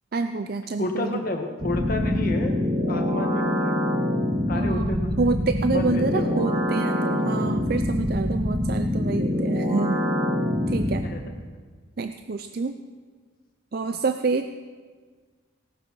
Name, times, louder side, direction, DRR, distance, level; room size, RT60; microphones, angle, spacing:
voice 1, 0.1-1.2 4.5-10.0 10.7-11.0 12.0-12.8 13.7-14.5, right 4 dB, 50° right, 9 dB, 0.4 m, -27 dB
voice 2, 0.8-2.5 2.9-3.8 4.5-5.3 5.7-6.5 11.0-11.2 13.9-14.0, left 2 dB, 45° left, 3 dB, 1.6 m, -30 dB
sound 1, 1.6-11.0, left 1 dB, 30° right, 1.9 m, -25 dB
18.0 x 12.0 x 4.6 m, 1.5 s
head